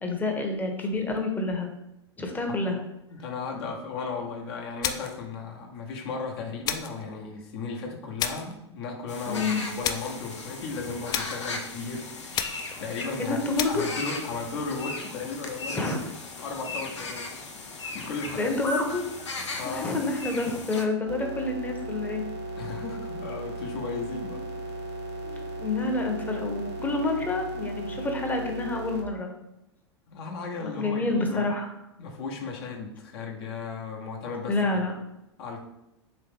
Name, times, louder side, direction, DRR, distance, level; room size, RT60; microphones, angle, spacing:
voice 1, 0.0-1.7 2.2-2.8 9.3-9.6 13.2-13.9 15.7-16.0 18.4-19.0 19.6-22.2 25.2-29.3 30.6-31.7 34.5-34.9, left 2 dB, 10° left, 2 dB, 0.7 m, -28 dB
voice 2, 3.2-12.1 12.8-13.4 13.7-15.9 16.4-17.3 17.9-18.5 19.5-20.0 22.6-24.4 30.1-31.5 32.0-34.8 35.4-35.6, left 4 dB, 60° left, 1 dB, 0.9 m, -35 dB
sound 1, 4.8-5.3 6.6-7.0 8.2-8.6 9.8-10.2 11.1-11.5 12.3-12.8 13.6-13.9, left 8 dB, 25° left, 0.3 m, -31 dB
sound 2, 9.1-20.9, left 3 dB, 85° left, 0.6 m, -37 dB
sound 3, 21.1-29.0, right 1 dB, 65° right, 1.0 m, -36 dB
3.4 x 3.0 x 3.4 m, 0.88 s
hypercardioid pair, 95°, 15 cm